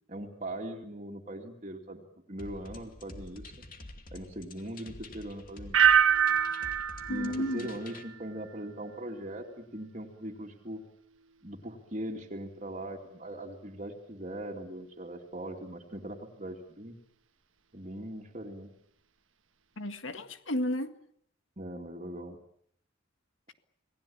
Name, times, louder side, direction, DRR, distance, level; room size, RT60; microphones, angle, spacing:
voice 1, 0.1-3.5 4.1-5.8 7.1-10.8 11.4-17.0 17.7-18.7 21.6-22.4, right 1 dB, 35° right, 2.6 m, -40 dB
sound 1, 2.4-8.0, left 2 dB, 45° left, 2.5 m, -48 dB
sound 2, 5.7-8.6 8.9-9.4, right 9 dB, 85° right, 1.5 m, -26 dB
voice 2, 7.1-7.7 19.8-20.9, equal, 80° left, 1.9 m, -32 dB
28.0 x 19.5 x 8.7 m
head